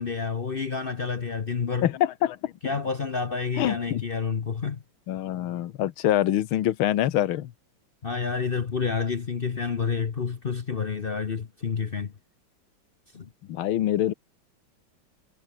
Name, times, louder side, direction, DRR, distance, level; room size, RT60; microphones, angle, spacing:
voice 1, 0.0-1.9 2.6-4.8 8.0-12.1 13.1-13.3, left 5 dB, 50° left, 0.6 m, -29 dB
voice 2, 1.8-2.5 3.6-4.0 5.1-7.5 13.5-14.1, left 12 dB, 80° left, 1.8 m, -25 dB
omnidirectional pair, 2.3 m